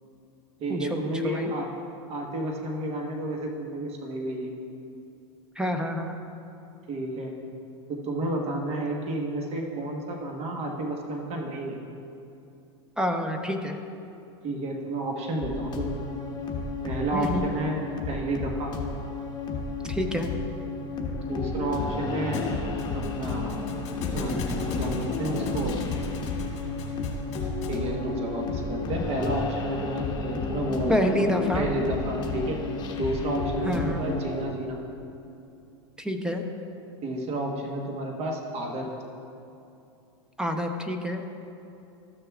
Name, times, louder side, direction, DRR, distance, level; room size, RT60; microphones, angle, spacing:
voice 1, 0.6-1.7 2.1-4.5 6.9-7.3 7.9-11.8 14.4-16.0 16.8-17.8 18.1-18.7 21.3-22.4 22.9-23.6 24.1-25.8 27.7-32.6 33.0-34.8 37.0-38.9, right 1 dB, 40° right, 1 dB, 1.2 m, -31 dB
voice 2, 5.6-6.1 13.0-13.8 17.1-17.4 19.9-20.3 30.9-31.7 33.6-34.1 36.0-36.4 40.4-41.2, equal, 5° right, 5 dB, 0.7 m, -27 dB
sound 1, 15.4-34.4, left 3 dB, 30° left, 1.3 m, -32 dB
Thump thud, 22.3-27.9, left 4 dB, 45° left, 1.7 m, -37 dB
14.0 x 6.7 x 2.4 m, 2.7 s
hypercardioid pair, 110°, 15 cm